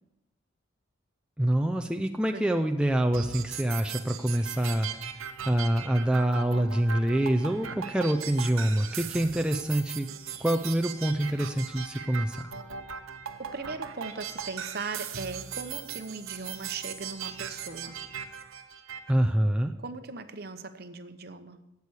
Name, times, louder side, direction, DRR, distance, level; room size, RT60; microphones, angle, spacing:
voice 1, 1.4-4.9 5.5-10.1 10.4-12.4 19.1-19.7, right 1 dB, 5° right, 5 dB, 0.4 m, -26 dB
sound 1, 3.1-19.1, right 7 dB, 90° right, 0.9 m, -39 dB
voice 2, 13.5-18.0 19.8-21.6, right 4 dB, 50° right, 9 dB, 0.8 m, -38 dB
12.5 x 8.4 x 4.8 m, 0.93 s
head